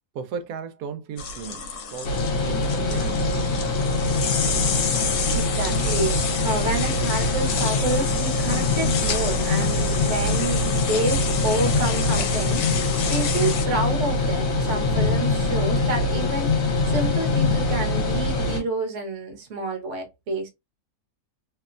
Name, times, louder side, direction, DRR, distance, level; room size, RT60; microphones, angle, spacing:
voice 1, 0.1-3.6, right 6 dB, 85° right, 1.1 m, -36 dB
sound 1, 1.2-13.7, left 6 dB, 80° left, 1.1 m, -30 dB
sound 2, 2.0-18.6, left 2 dB, 65° left, 1.2 m, -23 dB
voice 2, 5.3-12.6 13.1-20.5, right 2 dB, 55° right, 1.1 m, -29 dB
2.9 x 2.1 x 2.4 m
omnidirectional pair, 1.6 m